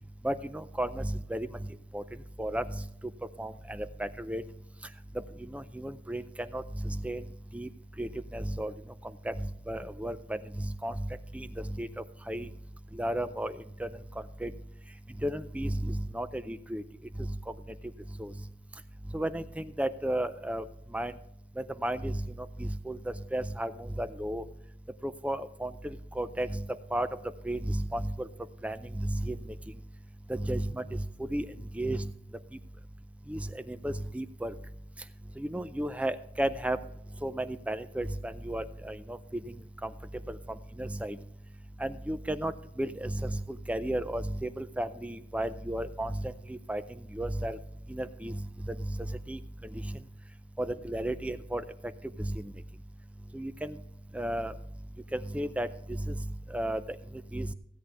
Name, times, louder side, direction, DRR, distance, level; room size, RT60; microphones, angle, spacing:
voice 1, 0.2-1.5 1.9-2.0 2.4-2.6 3.4-4.4 5.5-6.2 6.5-7.2 7.5-7.7 8.0-8.7 9.3-9.4 9.7-10.2 10.6-10.9 11.3-11.5 11.8-11.9 12.3-12.5 12.9-13.5 13.8-13.9 14.4-14.5 15.2-16.8 18.2-18.3 19.1-20.6 20.9-21.1 21.8-22.2 22.6-23.0 23.3-24.4 25.0-25.7 26.2-26.6 26.9-27.1 27.5-28.3 28.6-29.4 30.3-31.0 31.3-31.5 31.8-32.1 33.3-34.5 35.4-36.8 37.2-39.2 40.3-40.4 40.8-41.2 41.8-42.5 42.8-43.4 43.7-46.8 47.1-47.6 47.9-48.4 48.7-48.8 49.3-49.4 50.6-51.6 52.2-52.5 53.3-53.8 54.1-54.5 55.1-55.7 56.1-56.2 56.5-56.8 57.3-57.5, right 1 dB, 5° right, 12 dB, 0.4 m, -33 dB
16.0 x 8.8 x 3.4 m, 0.77 s
head